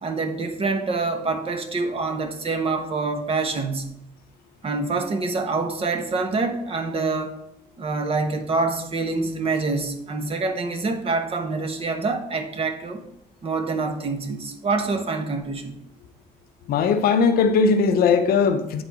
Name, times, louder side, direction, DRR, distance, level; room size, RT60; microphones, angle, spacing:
voice 1, 0.0-4.0 4.6-7.3 7.8-13.0 13.4-15.8, right 3 dB, 35° right, 1.0 m, -26 dB
voice 2, 16.7-18.8, left 5 dB, 65° left, 0.7 m, -19 dB
8.0 x 3.9 x 4.8 m
cardioid pair, 110°, 17 cm